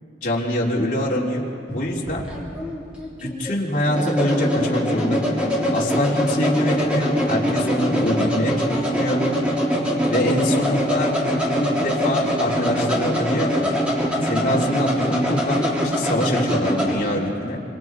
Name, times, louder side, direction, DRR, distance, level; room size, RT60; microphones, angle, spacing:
voice 1, 0.2-1.5 1.7-2.2 3.2-9.2 10.1-11.1 11.6-13.8 14.2-17.6, left 1 dB, 45° left, -4 dB, 3.6 m, -24 dB
sound 1, 1.7-17.0, equal, 5° right, 3.7 m, -23 dB
27.0 x 26.5 x 4.8 m, 2.5 s
head